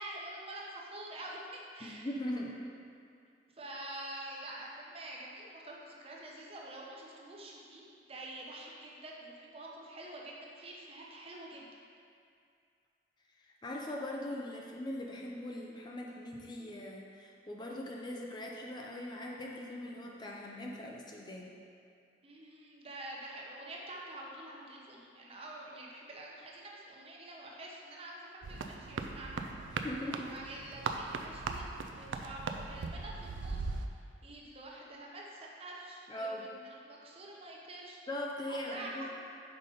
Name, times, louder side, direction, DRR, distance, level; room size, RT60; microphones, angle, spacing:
voice 1, 0.0-2.1 3.5-11.7 22.2-29.4 29.7-29.8 30.1-33.6 34.2-38.0 38.5-39.1, right 1 dB, 30° right, -3 dB, 0.8 m, -47 dB
voice 2, 1.8-2.6 13.3-21.5 29.8-30.3 36.1-36.5 38.1-39.2, left 1 dB, 25° left, -1 dB, 0.4 m, -41 dB
sound 1, 28.4-33.9, right 4 dB, 85° right, 0.4 m, -39 dB
5.4 x 5.0 x 4.2 m, 2.4 s
head